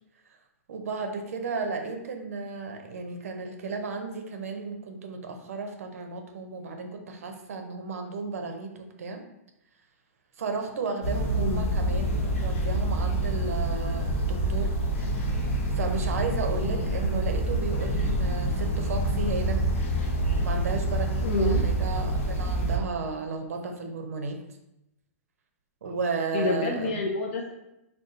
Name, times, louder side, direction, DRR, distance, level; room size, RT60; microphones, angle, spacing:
voice 1, 0.7-8.7 9.0-9.2 10.4-14.7 15.7-19.7 20.4-24.4 25.8-27.0, right 4 dB, 70° right, 5 dB, 0.6 m, -33 dB
sound 1, 11.0-22.8, right 1 dB, 65° left, 1.0 m, -27 dB
voice 2, 11.3-11.7 17.1-17.3 21.2-21.6 26.3-27.5, left 3 dB, 50° left, -1 dB, 0.5 m, -28 dB
3.9 x 2.3 x 3.8 m, 0.87 s
hypercardioid pair, 180°, 8 cm